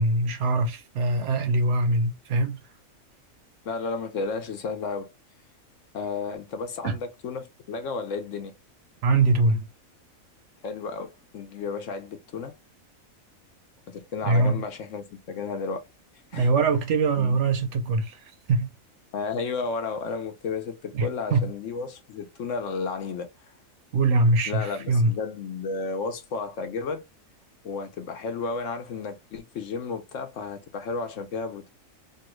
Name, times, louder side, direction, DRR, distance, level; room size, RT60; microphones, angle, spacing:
voice 1, 0.0-2.6 6.8-7.0 9.0-9.7 14.2-14.6 16.3-18.2 18.5-18.7 20.9-21.5 23.9-25.1, right 3 dB, 70° right, 0.9 m, -23 dB
voice 2, 3.6-5.1 5.9-8.5 10.6-12.5 13.9-15.9 16.3-16.5 17.2-17.4 19.1-23.3 24.5-27.0 27.6-31.7, left 4 dB, 70° left, 1.0 m, -32 dB
3.2 x 2.3 x 3.0 m
omnidirectional pair, 1.4 m